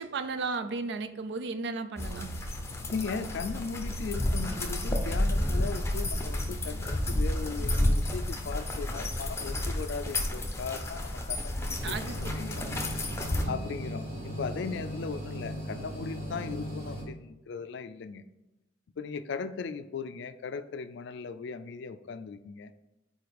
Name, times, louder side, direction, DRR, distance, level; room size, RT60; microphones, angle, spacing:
voice 1, 0.0-2.3 11.8-12.2 13.4-13.7, right 4 dB, 60° right, 10 dB, 0.4 m, -34 dB
sound 1, 2.0-13.4, left 1 dB, 15° left, 0.7 m, -31 dB
voice 2, 2.9-12.6 13.5-18.2 19.0-22.7, left 5 dB, 65° left, 11 dB, 0.4 m, -38 dB
sound 2, 11.8-17.0, equal, 30° right, 1.8 m, -38 dB
4.7 x 4.2 x 5.1 m, 0.99 s
head